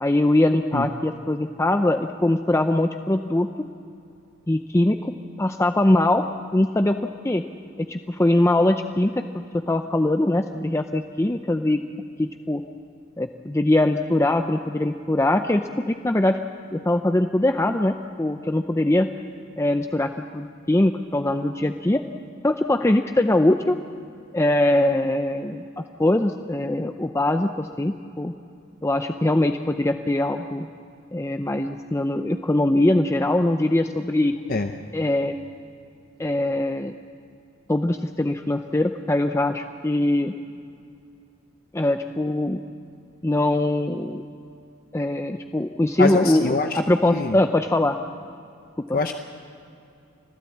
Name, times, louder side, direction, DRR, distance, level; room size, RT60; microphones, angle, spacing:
voice 1, 0.0-3.5 4.5-6.2 6.5-7.0 7.2-7.4 7.8-9.2 9.5-11.8 12.2-12.6 13.2-16.4 16.7-19.1 19.6-22.0 22.4-23.8 24.3-28.3 28.8-30.7 31.1-34.4 34.9-35.4 36.2-36.9 37.7-40.3 41.7-42.6 43.2-44.2 44.9-48.0 48.9-49.0, left 1 dB, 15° left, 6 dB, 0.5 m, -22 dB
voice 2, 46.0-47.4 48.9-49.1, left 3 dB, 45° left, 5 dB, 0.8 m, -24 dB
25.5 x 15.5 x 8.5 m, 2.6 s
head